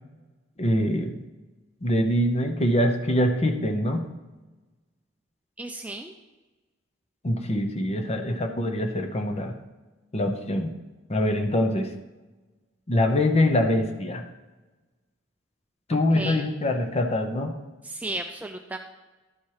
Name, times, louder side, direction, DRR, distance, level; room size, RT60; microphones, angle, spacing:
voice 1, 0.6-1.1 1.8-4.0 7.2-9.5 10.1-10.7 11.1-11.9 12.9-14.2 15.9-17.6, left 1 dB, 30° left, 6 dB, 0.7 m, -24 dB
voice 2, 5.6-6.1 16.1-16.5 17.8-18.8, right 2 dB, 5° right, 4 dB, 0.4 m, -34 dB
11.5 x 4.4 x 4.8 m, 1.2 s
head